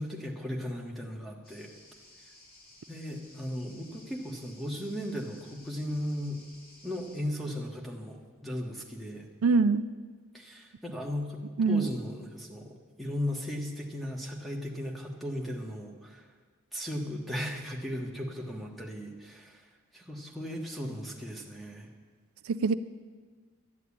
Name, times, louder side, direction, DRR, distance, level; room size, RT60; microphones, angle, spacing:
voice 1, 0.0-1.7 2.9-6.4 6.8-9.3 10.3-11.4 11.7-16.3 16.7-19.6 19.9-21.9, equal, ahead, 0 dB, 1.3 m, -36 dB
sound 1, 1.4-7.2, left 1 dB, 40° left, 2.1 m, -56 dB
voice 2, 9.4-9.9 11.6-11.9 22.5-22.7, right 4 dB, 75° right, 13 dB, 0.4 m, -24 dB
13.0 x 9.3 x 8.5 m, 1.5 s
head